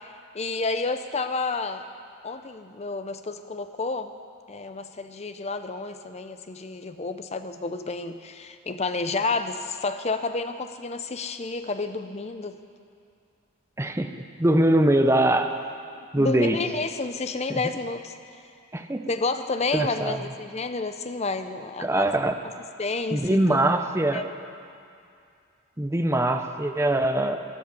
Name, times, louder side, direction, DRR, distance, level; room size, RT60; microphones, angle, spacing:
voice 1, 0.3-1.8 2.2-4.1 4.5-12.6 16.2-18.1 19.1-22.1 22.8-23.7 24.1-24.3, left 3 dB, 30° left, 9 dB, 0.6 m, -30 dB
voice 2, 13.8-14.1 14.4-15.5 16.1-16.6 17.5-17.6 18.7-19.1 19.7-20.2 21.8-22.4 23.1-24.2 25.8-27.4, right 1 dB, 10° right, 7 dB, 0.6 m, -22 dB
12.5 x 12.0 x 6.9 m, 2.4 s
head